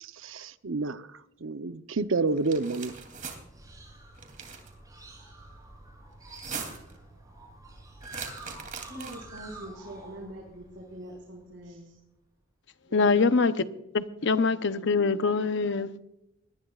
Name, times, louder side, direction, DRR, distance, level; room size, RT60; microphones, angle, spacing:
voice 1, 0.0-1.0 1.4-2.9, right 3 dB, 90° right, 0.8 m, -29 dB
sound 1, 2.4-3.4 4.2-4.7 6.2-6.9 8.0-9.4, right 6 dB, 45° right, 3.0 m, -40 dB
sound 2, 2.8-11.9, right 2 dB, 20° right, 7.5 m, -49 dB
voice 2, 8.9-11.9 12.9-13.2, right 1 dB, 70° right, 4.9 m, -43 dB
voice 3, 12.9-13.6 13.9-15.9, left 4 dB, 65° left, 0.8 m, -24 dB
22.5 x 19.0 x 2.4 m
head